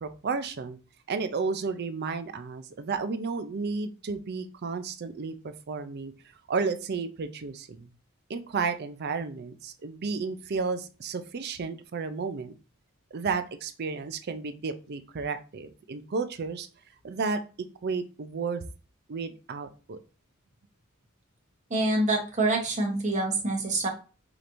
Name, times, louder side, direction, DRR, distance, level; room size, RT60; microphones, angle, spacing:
voice 1, 0.0-0.8 1.1-6.1 6.5-7.9 8.3-12.6 13.1-16.7 17.0-17.4 17.8-18.7 19.1-20.0, right 4 dB, 50° right, 10 dB, 0.5 m, -32 dB
voice 2, 21.7-23.9, right 2 dB, 35° right, 1 dB, 1.0 m, -26 dB
5.0 x 3.0 x 2.5 m, 0.34 s
head